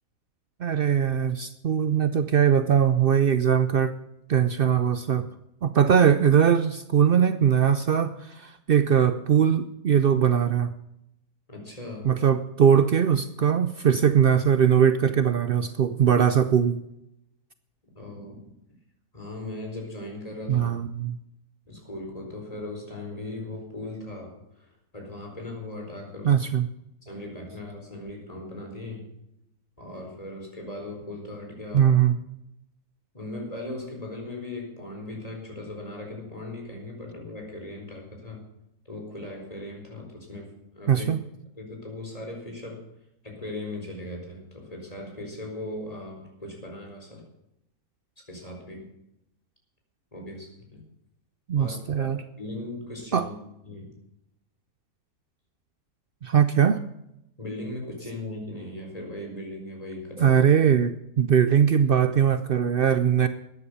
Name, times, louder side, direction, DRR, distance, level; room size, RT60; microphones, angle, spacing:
voice 1, 0.6-3.9 4.3-5.3 5.6-10.7 12.0-16.8 20.5-21.2 26.2-26.7 31.7-32.2 40.9-41.2 51.5-52.2 53.1-53.3 56.2-56.8 60.2-63.3, right 8 dB, 80° right, 12 dB, 0.5 m, -21 dB
voice 2, 11.5-12.1 17.9-18.4 19.1-20.7 21.7-26.3 27.0-29.1 29.8-32.0 33.1-38.4 38.8-41.1 41.6-42.8 43.2-47.2 48.3-48.9 50.1-50.8 51.5-52.1 52.4-53.3 53.6-53.9 57.4-60.4, left 2 dB, 20° left, 1 dB, 4.5 m, -38 dB
13.5 x 9.9 x 6.7 m, 0.83 s
omnidirectional pair, 1.7 m